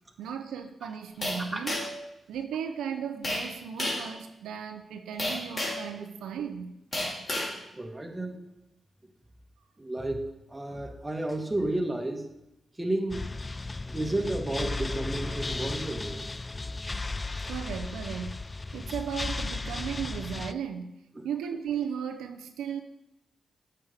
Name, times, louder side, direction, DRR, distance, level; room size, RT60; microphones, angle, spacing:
voice 1, 0.2-1.8 2.3-6.7 7.3-7.4 17.5-21.0 21.2-22.8, right 8 dB, 85° right, 6 dB, 0.5 m, -36 dB
sound 1, 1.2-2.0 3.2-3.5 3.8-4.1 5.2-5.9 6.9-7.5, left 1 dB, 45° left, 3.3 m, -31 dB
voice 2, 7.7-8.4 9.8-12.3 12.8-13.3 13.9-16.2 17.4-17.5 21.1-21.3, right 1 dB, 20° right, 3 dB, 1.6 m, -32 dB
sound 2, 13.1-20.5, left 3 dB, 30° left, 0.3 m, -35 dB
8.8 x 6.9 x 3.5 m, 0.86 s
supercardioid pair, 45°, 0 cm